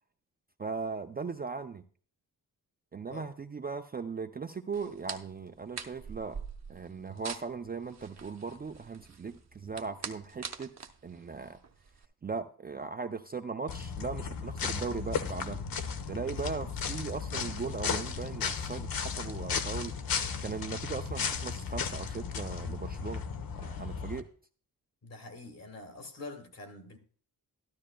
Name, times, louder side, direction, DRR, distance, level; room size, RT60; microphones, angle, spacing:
voice 1, 0.6-1.8 2.9-6.4 6.7-10.7 11.0-11.6 12.2-15.6 16.1-19.9 20.4-23.2 23.6-24.3, right 5 dB, 25° right, 0.4 m, -38 dB
sound 1, 4.7-12.0, right 6 dB, 50° right, 0.9 m, -45 dB
sound 2, 13.7-24.2, left 6 dB, 80° left, 1.0 m, -35 dB
voice 2, 25.0-27.0, left 2 dB, 45° left, 1.7 m, -45 dB
13.0 x 12.5 x 2.2 m
wide cardioid pair, 175°, 36 cm